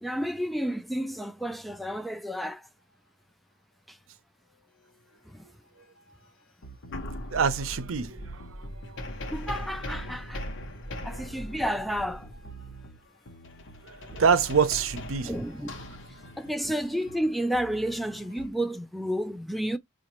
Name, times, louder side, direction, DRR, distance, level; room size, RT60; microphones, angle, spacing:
voice 1, 0.0-2.7 5.3-5.4 9.3-10.4 11.0-12.3 15.2-15.7 16.4-19.8, equal, ahead, 0.3 m, -31 dB
sound 1, 6.1-6.2 6.6-18.5, equal, 65° left, 0.9 m, -40 dB
voice 2, 7.3-8.5 8.9-9.0 14.1-15.3, right 6 dB, 80° right, 0.6 m, -25 dB
5.0 x 2.5 x 2.9 m
head